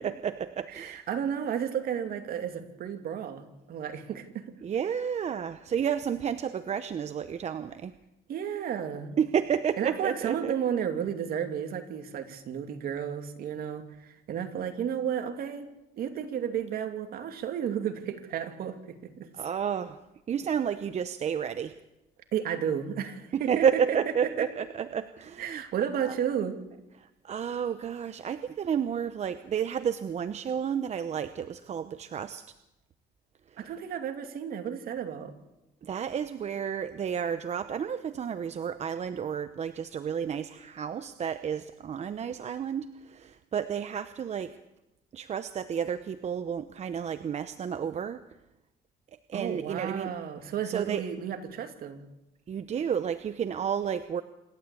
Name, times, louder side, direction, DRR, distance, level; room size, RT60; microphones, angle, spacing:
voice 1, 0.0-1.0 4.6-7.9 9.2-10.5 19.3-20.0 20.3-21.7 23.3-25.6 26.0-26.1 27.0-32.4 33.5-33.6 35.8-44.5 45.1-48.2 49.3-50.1 50.6-51.0 52.5-54.2, right 8 dB, 40° right, 11 dB, 0.9 m, -31 dB
voice 2, 0.7-4.4 8.3-9.2 9.8-15.7 16.0-19.3 22.3-24.0 24.4-24.5 25.4-26.6 33.6-35.3 49.3-52.0, right 8 dB, 60° right, 6 dB, 2.8 m, -32 dB
26.5 x 12.5 x 8.6 m, 0.93 s
cardioid pair, 110°, 17 cm